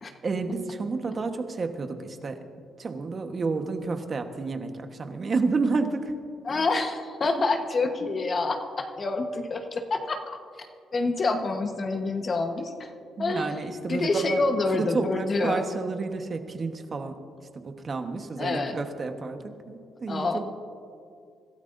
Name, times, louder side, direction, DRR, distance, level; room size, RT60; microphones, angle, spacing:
voice 1, 0.2-2.5 2.8-6.1 13.2-14.4 14.7-17.2 17.5-20.4, right 4 dB, 40° right, 6 dB, 1.2 m, -30 dB
voice 2, 6.5-10.7 10.9-12.9 13.2-13.5 13.9-15.6 18.4-18.8 20.1-20.4, left 3 dB, 40° left, 5 dB, 1.2 m, -27 dB
25.5 x 13.0 x 2.6 m, 2.3 s
cardioid pair, 90°, 0 cm